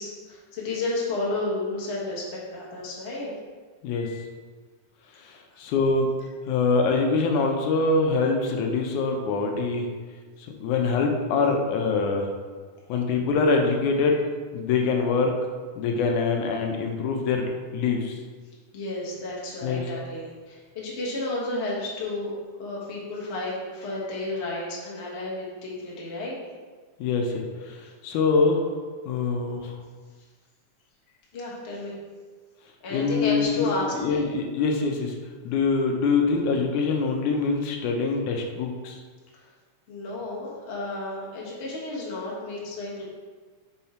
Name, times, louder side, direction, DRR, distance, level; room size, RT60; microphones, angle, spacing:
voice 1, 0.0-3.3 18.7-26.4 31.3-31.9 32.8-34.2 39.3-39.5 39.9-43.0, left 2 dB, 50° left, -5 dB, 0.8 m, -32 dB
voice 2, 3.8-4.3 5.2-6.1 6.5-9.9 10.6-12.3 12.9-14.3 14.5-15.3 15.8-18.2 19.6-19.8 27.0-28.6 29.1-29.8 32.9-33.7 33.9-35.2 35.4-39.0, left 4 dB, 80° left, 2 dB, 2.1 m, -24 dB
5.6 x 4.7 x 4.4 m, 1.5 s
omnidirectional pair, 3.6 m